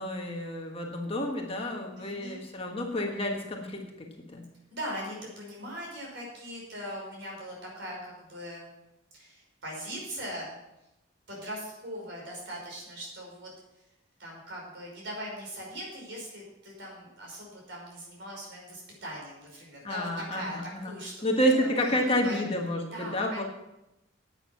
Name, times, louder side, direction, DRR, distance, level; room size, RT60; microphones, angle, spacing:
voice 1, 0.0-3.8 4.3-4.4 19.8-20.9 21.2-23.4, equal, 30° left, 1 dB, 1.4 m, -29 dB
voice 2, 2.0-2.4 4.7-8.7 9.1-10.6 11.3-13.5 14.2-21.9 22.2-22.4 22.9-23.4, equal, 60° right, -2 dB, 5.7 m, -40 dB
11.0 x 9.1 x 5.9 m, 0.89 s
head